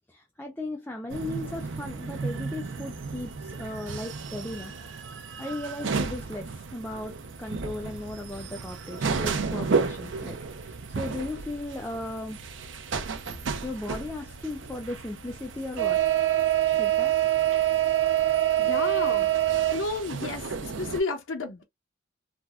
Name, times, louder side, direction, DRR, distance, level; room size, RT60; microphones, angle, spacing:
voice 1, 0.1-4.7 5.4-7.1 7.4-12.4 13.6-16.0 16.8-17.1, left 1 dB, 10° left, 0.4 m, -36 dB
sound 1, 1.1-21.0, right 9 dB, 70° right, 0.5 m, -29 dB
voice 2, 18.6-19.3 19.7-21.6, left 3 dB, 85° left, 0.7 m, -32 dB
3.4 x 2.2 x 2.4 m
head